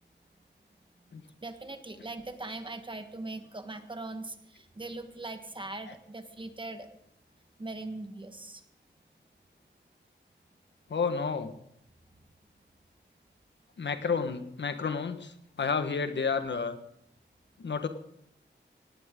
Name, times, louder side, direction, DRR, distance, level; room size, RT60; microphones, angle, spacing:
voice 1, 1.4-6.9 7.6-8.6, right 2 dB, 25° right, 7 dB, 1.4 m, -40 dB
voice 2, 10.9-11.5 13.8-15.3 15.6-16.7 17.6-17.9, left 5 dB, 65° left, 8 dB, 1.4 m, -30 dB
18.0 x 17.0 x 3.8 m, 0.74 s
wide cardioid pair, 140°, 20 cm